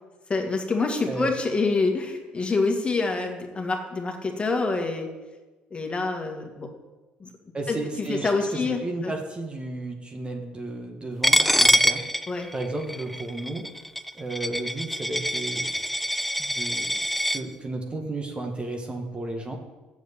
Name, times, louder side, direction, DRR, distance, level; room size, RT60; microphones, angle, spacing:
voice 1, 0.3-5.1 5.7-6.7 7.2-7.3 7.7-7.8 8.1-9.1 12.3-12.5, left 3 dB, 25° left, 3 dB, 2.0 m, -26 dB
voice 2, 7.5-12.0 12.5-13.7 14.1-15.7 16.4-17.0 17.3-19.6, right 2 dB, 25° right, 3 dB, 1.7 m, -33 dB
Coin (dropping), 11.2-17.4, equal, ahead, 0.5 m, -24 dB
7.4 x 7.2 x 8.3 m, 1.2 s
hypercardioid pair, 60°, 4 cm